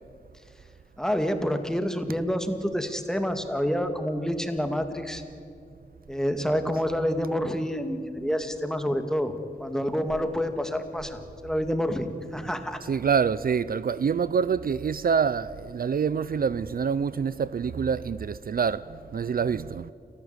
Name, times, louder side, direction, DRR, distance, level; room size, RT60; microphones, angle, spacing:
voice 1, 1.0-5.2 6.1-9.3 9.6-12.1 12.3-12.8, equal, 5° left, 2.1 m, -28 dB
voice 2, 12.8-19.9, right 6 dB, 65° right, 0.5 m, -26 dB
30.0 x 14.0 x 8.1 m
wide cardioid pair, 75°, 16 cm